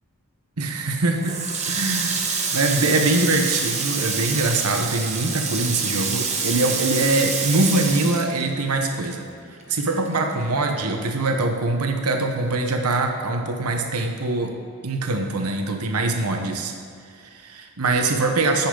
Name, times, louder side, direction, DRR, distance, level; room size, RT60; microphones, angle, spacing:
voice 1, 0.6-9.3 9.7-14.5 14.8-16.7 17.2-18.7, right 2 dB, 75° right, 4 dB, 1.0 m, -23 dB
Water tap faucet, 1.2-9.1 9.4-10.7, right 5 dB, 30° right, 1.0 m, -27 dB
10.0 x 8.4 x 3.9 m, 2.3 s
head